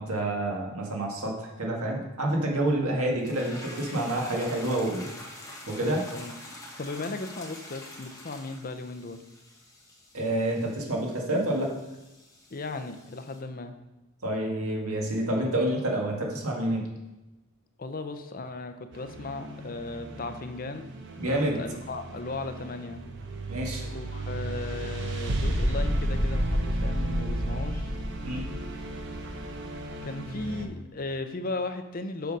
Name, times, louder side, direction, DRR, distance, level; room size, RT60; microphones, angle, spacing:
voice 1, 0.0-5.1 5.7-6.0 10.1-11.7 14.2-16.9 21.2-21.6 23.5-23.8 28.2-28.5, right 1 dB, 85° right, 0 dB, 1.8 m, -28 dB
sound 1, 3.2-13.4, left 1 dB, 15° left, 1.4 m, -46 dB
voice 2, 5.6-6.4 6.8-9.2 12.5-13.7 17.8-20.9 21.2-23.0 23.8-27.9 30.0-32.4, left 3 dB, 40° left, 8 dB, 0.6 m, -36 dB
sound 2, 18.9-30.6, right 1 dB, 55° right, 1.0 m, -32 dB
6.9 x 6.2 x 5.3 m, 1.0 s
head